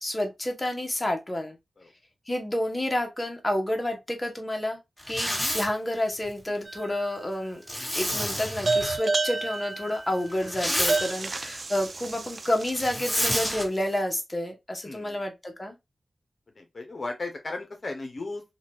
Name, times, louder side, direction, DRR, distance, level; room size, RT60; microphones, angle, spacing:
voice 1, 0.0-1.6 2.3-4.8 5.1-7.6 7.9-15.7, left 1 dB, 25° left, 0.8 m, -29 dB
Zipper (clothing), 5.0-5.7 7.7-9.0 10.3-11.0 12.7-13.6, equal, ahead, 1.6 m, -29 dB
sound 1, 6.7-7.3 8.7-13.1, right 3 dB, 55° right, 0.4 m, -30 dB
voice 2, 14.8-15.2 16.6-18.4, left 2 dB, 55° left, 0.7 m, -35 dB
2.7 x 2.2 x 3.1 m
wide cardioid pair, 60°, 0 cm